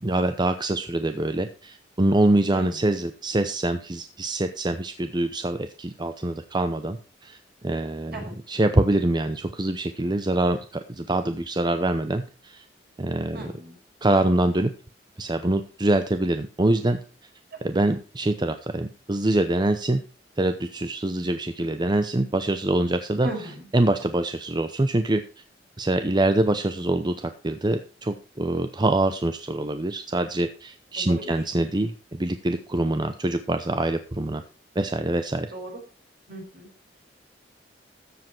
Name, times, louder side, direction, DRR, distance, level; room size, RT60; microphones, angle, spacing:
voice 1, 0.0-7.4 7.6-12.6 13.0-13.5 14.0-14.7 15.2-17.0 17.6-20.0 20.4-23.3 23.7-25.2 25.8-34.4 34.8-35.5, right 1 dB, 25° right, 9 dB, 0.7 m, -24 dB
voice 2, 13.3-13.8 17.5-17.6 23.2-23.7 31.0-31.3 35.5-35.7 36.3-36.7, right 1 dB, 60° right, 0 dB, 5.5 m, -36 dB
14.0 x 7.6 x 4.5 m, 0.35 s
head